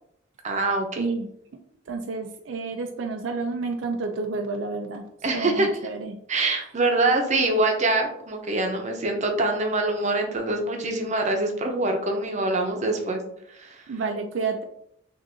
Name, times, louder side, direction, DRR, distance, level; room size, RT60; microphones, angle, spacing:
voice 1, 0.4-1.1 5.2-5.7 6.3-13.2 13.5-13.8, right 2 dB, 40° right, 3 dB, 0.7 m, -24 dB
voice 2, 1.0-1.3 1.9-5.0 5.3-6.2 13.9-14.6, right 4 dB, 75° right, 4 dB, 0.4 m, -30 dB
6.2 x 2.6 x 2.6 m, 0.70 s
head